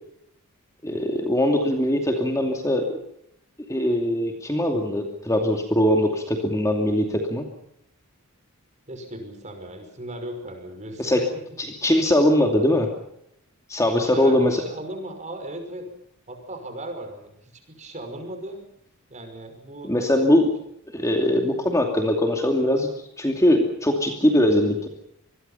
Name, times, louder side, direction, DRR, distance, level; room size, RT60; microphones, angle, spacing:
voice 1, 0.8-2.9 3.7-7.4 11.0-11.2 11.6-12.9 13.7-14.6 19.8-20.5 20.9-22.9 23.2-24.9, left 1 dB, 15° left, 3 dB, 2.6 m, -21 dB
voice 2, 8.9-11.4 13.9-15.9 16.3-18.7 19.1-20.5, right 1 dB, 30° right, 6 dB, 5.6 m, -37 dB
26.5 x 21.5 x 5.7 m, 0.75 s
head